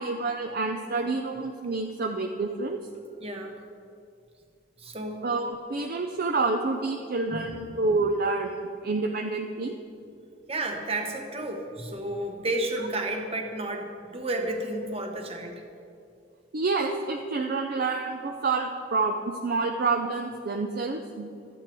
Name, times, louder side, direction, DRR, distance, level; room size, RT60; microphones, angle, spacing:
voice 1, 0.0-2.8 5.2-9.7 16.5-21.3, right 3 dB, 55° right, 3 dB, 0.5 m, -28 dB
voice 2, 3.2-3.6 4.8-5.3 7.3-7.5 10.5-15.6, right 1 dB, 35° right, 3 dB, 1.1 m, -32 dB
13.0 x 8.4 x 4.5 m, 2.5 s
head